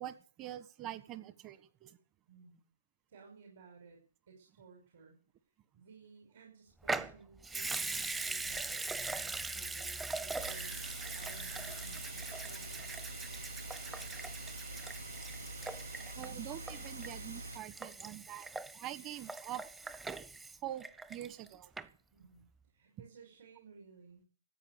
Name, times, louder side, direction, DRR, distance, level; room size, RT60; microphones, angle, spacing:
voice 1, 0.0-2.0 16.2-19.7 20.6-21.7, right 12 dB, 30° right, 13 dB, 1.4 m, -45 dB
voice 2, 2.3-2.6 3.1-4.0 4.3-5.2 5.7-10.9 11.1-12.9 22.1-24.2, right 5 dB, 55° right, 1 dB, 5.7 m, -57 dB
Water tap faucet / Sink (filling or washing) / Liquid, 6.8-21.5 21.8-21.9, right 3 dB, 10° right, 0.8 m, -41 dB
sound 1, 10.4-17.6, right 2 dB, 90° right, 1.3 m, -45 dB
15.0 x 9.0 x 8.1 m, 0.40 s
hypercardioid pair, 130°, 0 cm